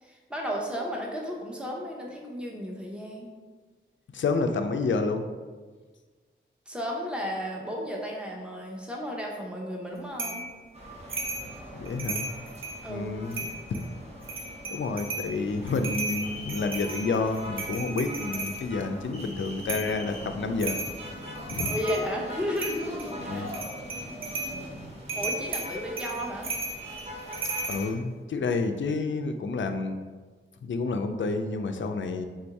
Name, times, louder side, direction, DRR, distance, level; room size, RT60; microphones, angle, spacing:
voice 1, 0.0-3.3 6.7-10.5 12.8-13.1 21.7-23.5 25.1-26.5, equal, 5° right, -2 dB, 0.8 m, -33 dB
voice 2, 4.1-5.3 11.7-12.3 12.9-13.8 14.7-20.8 21.5-21.7 23.3-23.5 27.7-30.0 30.6-32.3, left 3 dB, 70° left, 7 dB, 0.4 m, -29 dB
sound 1, 10.2-10.5 11.1-11.5 11.8-12.8 13.3-13.8 14.2-15.3 15.7-18.6 19.7-20.0 20.6-21.0 21.3-22.1 22.6-23.1 23.5-24.5 25.1-27.8, right 2 dB, 75° right, 0.7 m, -34 dB
sound 2, 10.7-27.9, equal, 30° right, 0.9 m, -42 dB
3.8 x 2.6 x 4.5 m, 1.4 s
wide cardioid pair, 90°, 21 cm